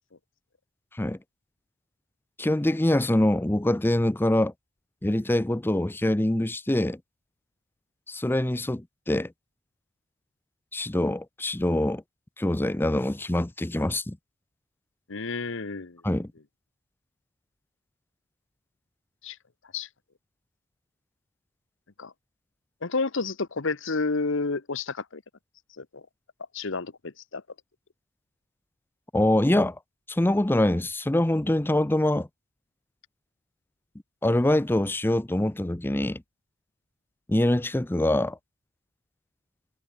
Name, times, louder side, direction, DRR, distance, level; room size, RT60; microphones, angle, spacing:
voice 1, 2.4-4.5 5.0-7.0 8.1-9.3 10.7-12.0 12.4-14.2 16.0-16.3 29.1-29.8 30.1-32.3 34.2-36.2 37.3-38.4, left 1 dB, 10° left, 0.5 m, -24 dB
voice 2, 15.1-16.0 19.2-19.4 19.7-19.9 22.0-22.1 22.8-25.2 25.8-26.0 26.5-27.4, left 3 dB, 60° left, 1.1 m, -30 dB
head